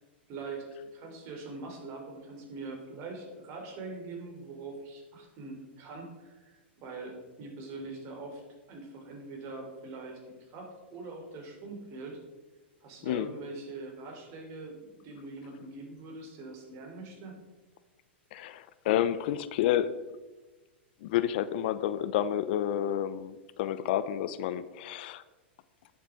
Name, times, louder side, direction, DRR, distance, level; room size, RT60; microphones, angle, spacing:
voice 1, 0.3-8.4 8.7-10.2 10.5-12.2 12.8-17.4, right 3 dB, 45° right, 2 dB, 3.4 m, -43 dB
voice 2, 18.3-19.9 21.0-25.2, left 11 dB, 60° left, 15 dB, 0.6 m, -30 dB
10.5 x 7.4 x 4.9 m, 1.2 s
hypercardioid pair, 110°, 6 cm